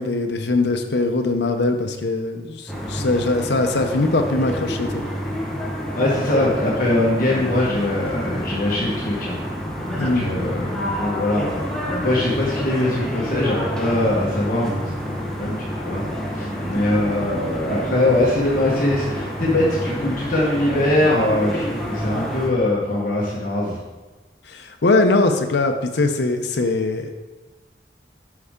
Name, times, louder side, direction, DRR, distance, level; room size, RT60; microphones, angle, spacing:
voice 1, 0.0-5.0 10.0-10.3 24.5-27.1, left 2 dB, 75° left, 6 dB, 0.7 m, -21 dB
sound 1, 2.7-22.5, equal, 5° left, 0.9 m, -28 dB
voice 2, 5.9-9.4 10.0-11.6 12.0-15.6 15.8-16.0 16.3-23.8, left 1 dB, 50° left, -5 dB, 1.4 m, -22 dB
8.1 x 5.4 x 3.7 m, 1.2 s
head